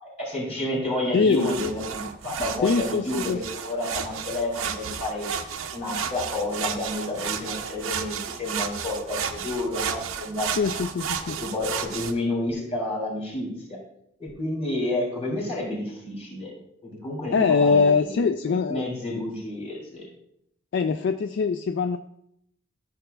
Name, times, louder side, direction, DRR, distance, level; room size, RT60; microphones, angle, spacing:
voice 1, 0.0-5.3 5.7-10.5 11.4-13.8 14.2-16.5 17.0-20.1, left 1 dB, 30° left, -3 dB, 2.9 m, -30 dB
voice 2, 1.1-1.5 2.6-3.4 10.6-11.4 17.3-18.8 20.7-22.0, left 5 dB, 60° left, 8 dB, 0.3 m, -23 dB
sound 1, 1.3-12.1, right 7 dB, 90° right, 0.6 m, -32 dB
13.0 x 6.7 x 2.3 m, 0.74 s
head